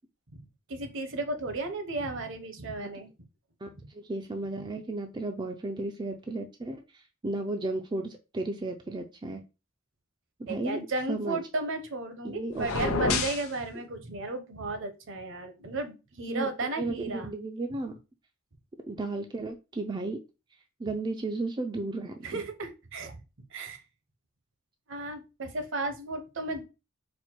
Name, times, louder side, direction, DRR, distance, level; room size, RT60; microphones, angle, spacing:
voice 1, 0.7-3.1 10.5-17.3 22.2-23.2 23.5-23.8 24.9-26.6, right 2 dB, 65° right, 7 dB, 0.8 m, -34 dB
voice 2, 3.6-9.4 10.4-10.8 11.1-11.4 12.2-13.2 16.3-16.5 16.8-17.9 18.9-20.2 20.8-22.4, right 2 dB, 20° right, 5 dB, 0.4 m, -34 dB
sound 1, 12.6-13.5, left 4 dB, 90° left, 0.7 m, -28 dB
4.2 x 2.2 x 4.4 m, 0.28 s
head